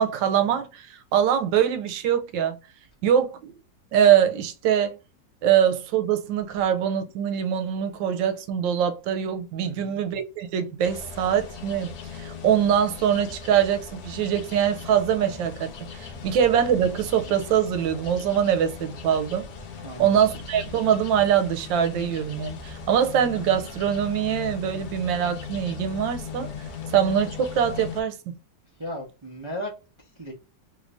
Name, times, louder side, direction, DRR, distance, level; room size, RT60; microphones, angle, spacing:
voice 1, 0.0-2.6 3.0-3.5 3.9-5.0 5.4-19.5 20.0-26.5 26.9-28.3, right 9 dB, 90° right, 1.3 m, -23 dB
voice 2, 9.6-10.0 16.1-16.4 19.8-20.3 28.8-29.7 30.2-30.3, left 1 dB, 25° right, 0.6 m, -36 dB
sound 1, 10.8-28.0, left 6 dB, 65° left, 1.1 m, -38 dB
3.2 x 2.5 x 3.2 m
omnidirectional pair, 2.0 m